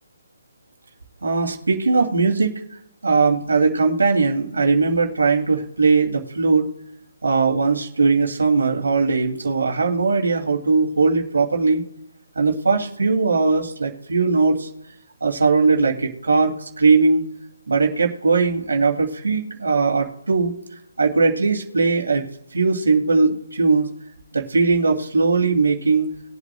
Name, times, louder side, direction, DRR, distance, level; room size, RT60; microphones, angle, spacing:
voice 1, 1.2-2.6 3.0-6.7 7.2-11.8 12.4-14.7 15.2-17.2 17.7-20.5 21.0-22.2 22.5-23.9 24.3-26.1, right 4 dB, 85° right, 2 dB, 2.5 m, -19 dB
21.0 x 8.2 x 2.3 m, 0.83 s
hypercardioid pair, 150°, 0 cm